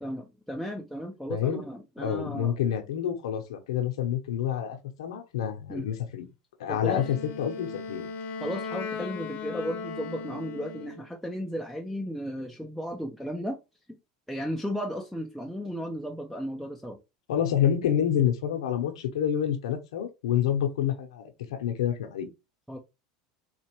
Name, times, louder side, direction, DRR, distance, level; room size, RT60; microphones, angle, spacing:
voice 1, 0.0-2.6 5.7-5.9 6.7-7.1 8.4-13.6 13.9-14.0 14.3-17.0 22.7-22.8, equal, ahead, 0.6 m, -35 dB
voice 2, 1.3-1.6 2.0-6.3 6.6-8.1 17.3-22.3, left 9 dB, 85° left, 0.8 m, -28 dB
Wind instrument woodwind instrument, 6.9-11.1, left 4 dB, 50° left, 0.8 m, -37 dB
4.2 x 2.5 x 3.0 m
hypercardioid pair, 100°, 3 cm